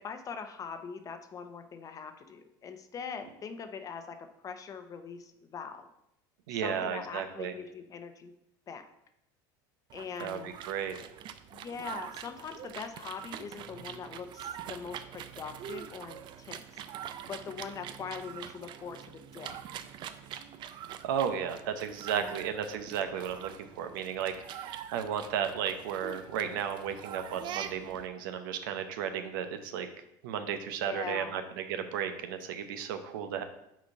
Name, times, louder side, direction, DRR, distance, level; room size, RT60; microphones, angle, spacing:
voice 1, 0.0-5.9 6.5-8.3 8.7-8.9 9.9-10.5 11.5-19.8 22.1-22.3 30.8-31.4, left 6 dB, 30° left, 8 dB, 0.8 m, -42 dB
voice 2, 6.5-7.5 10.2-11.1 21.0-23.5 23.8-29.9 30.2-33.4, right 8 dB, 80° right, 8 dB, 0.8 m, -34 dB
sound 1, 9.9-28.1, right 10 dB, 45° right, 0.5 m, -44 dB
6.2 x 4.1 x 5.4 m, 0.81 s
supercardioid pair, 110°, 11 cm